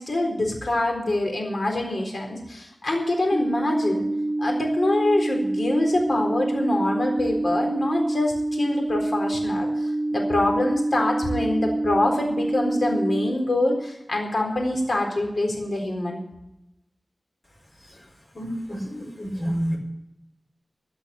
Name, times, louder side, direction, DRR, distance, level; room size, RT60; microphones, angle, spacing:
voice 1, 0.0-4.1 4.4-16.2, left 1 dB, 70° left, 1 dB, 4.0 m, -25 dB
sound 1, 3.3-13.3, right 2 dB, 40° right, 1.0 m, -26 dB
voice 2, 18.3-19.8, equal, 35° left, -2 dB, 4.6 m, -29 dB
15.5 x 6.2 x 9.9 m, 0.88 s
wide cardioid pair, 60°, 0 cm